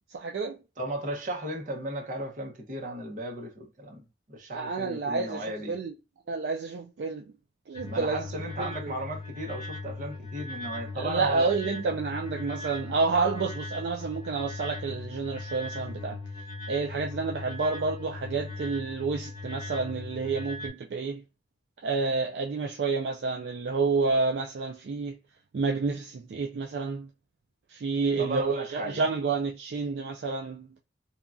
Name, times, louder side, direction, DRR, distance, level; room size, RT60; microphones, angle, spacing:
voice 1, 0.1-0.6 4.5-5.9 6.3-7.2 7.7-8.2 8.6-8.9 11.0-16.2 16.7-21.2 21.8-25.2 25.5-27.1 27.7-30.7, right 4 dB, 65° right, 0.4 m, -29 dB
voice 2, 0.8-5.8 7.9-11.8 28.2-29.0, right 1 dB, 45° right, 0.8 m, -36 dB
sound 1, 7.7-20.7, left 2 dB, 25° left, 0.8 m, -39 dB
2.8 x 2.3 x 2.4 m
head